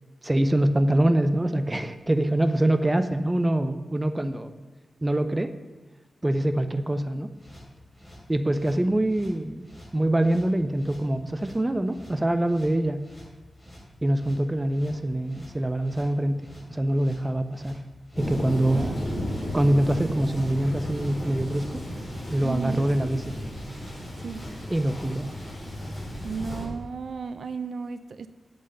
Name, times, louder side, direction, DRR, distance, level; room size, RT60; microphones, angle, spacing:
voice 1, 0.2-4.5 5.0-5.5 6.2-7.3 8.3-9.7 9.9-13.0 14.0-17.8 18.2-19.0 19.5-21.8 22.3-23.3 24.7-25.3, right 1 dB, 15° right, 9 dB, 0.7 m, -24 dB
sound 1, 7.3-25.1, equal, 5° left, 3.6 m, -49 dB
Thunder, 18.1-26.6, equal, 25° left, 4.0 m, -34 dB
voice 2, 18.7-19.3 22.4-22.8 24.2-24.4 26.2-28.3, right 5 dB, 65° right, 11 dB, 0.6 m, -34 dB
8.7 x 8.0 x 6.8 m, 1.4 s
wide cardioid pair, 145°, 0 cm